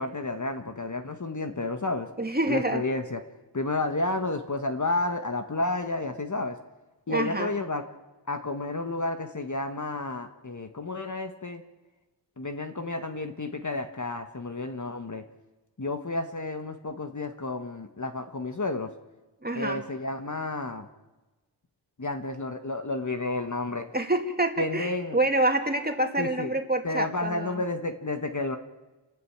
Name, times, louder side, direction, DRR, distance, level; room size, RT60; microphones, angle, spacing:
voice 1, 0.0-2.1 2.5-3.2 3.5-6.6 7.1-7.8 8.3-11.6 12.4-15.2 15.8-18.9 19.5-20.9 22.0-23.9 24.6-25.2 26.2-26.5 26.8-28.6, left 2 dB, 40° left, 7 dB, 1.4 m, -31 dB
voice 2, 2.2-2.8 7.1-7.5 19.4-19.8 23.9-27.6, right 2 dB, 20° right, 4 dB, 2.5 m, -27 dB
29.0 x 12.5 x 8.7 m, 1.2 s
wide cardioid pair, 65°, 45 cm